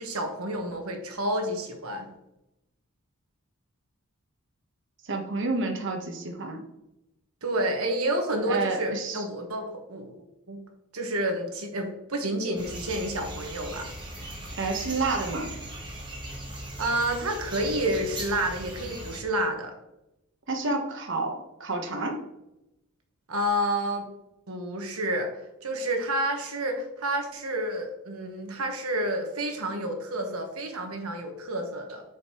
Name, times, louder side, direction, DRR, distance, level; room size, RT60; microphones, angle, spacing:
voice 1, 0.0-2.1 7.4-10.1 10.5-10.6 10.9-13.9 16.8-19.7 23.3-24.1 24.5-25.3 25.6-32.0, right 1 dB, 80° right, 4 dB, 1.2 m, -29 dB
voice 2, 5.0-6.6 8.5-9.2 14.6-15.5 20.5-22.2, right 3 dB, 60° right, 4 dB, 1.1 m, -29 dB
sound 1, 12.6-19.2, right 1 dB, 20° right, 1.3 m, -39 dB
8.2 x 5.1 x 3.0 m, 0.87 s
head